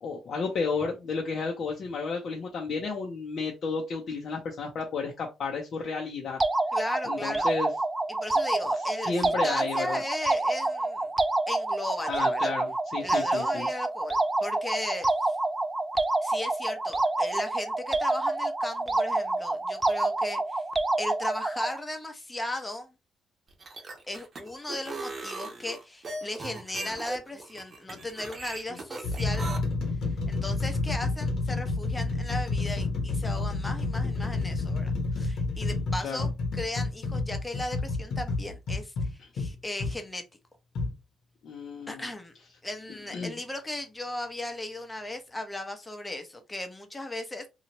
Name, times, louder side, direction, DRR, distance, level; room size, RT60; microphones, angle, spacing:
voice 1, 0.0-6.4 7.0-7.7 9.1-10.0 12.1-13.7 36.0-36.3 41.4-42.0 43.1-43.4, left 4 dB, 60° left, 0.7 m, -32 dB
sound 1, 6.4-21.8, right 2 dB, 20° right, 0.3 m, -28 dB
voice 2, 6.7-7.5 8.1-11.1 11.5-12.5 13.0-15.4 16.2-20.6 21.0-22.9 24.1-29.5 30.3-40.2 41.9-42.3 42.6-47.4, left 1 dB, 15° left, 0.8 m, -37 dB
sound 2, 23.5-29.6, right 3 dB, 40° right, 0.9 m, -38 dB
sound 3, 26.7-27.0 27.9-28.0 28.7-40.0 40.7-40.9, left 3 dB, 75° left, 1.1 m, -30 dB
3.0 x 2.4 x 2.9 m
cardioid pair, 95°, 0 cm